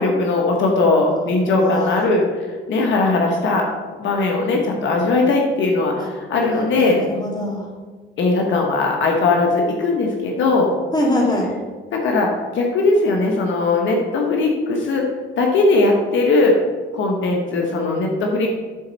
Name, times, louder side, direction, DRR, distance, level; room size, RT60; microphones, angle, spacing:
voice 1, 0.0-2.2 2.7-3.7 4.0-7.0 8.2-10.7 11.9-15.0 15.4-16.5 16.9-18.5, left 3 dB, 75° left, 1 dB, 1.1 m, -19 dB
voice 2, 1.5-2.0 6.0-6.1 6.5-7.7 10.9-11.5, left 1 dB, 20° left, -3 dB, 2.4 m, -23 dB
10.5 x 4.1 x 4.0 m, 1.4 s
cardioid pair, 90°, 20 cm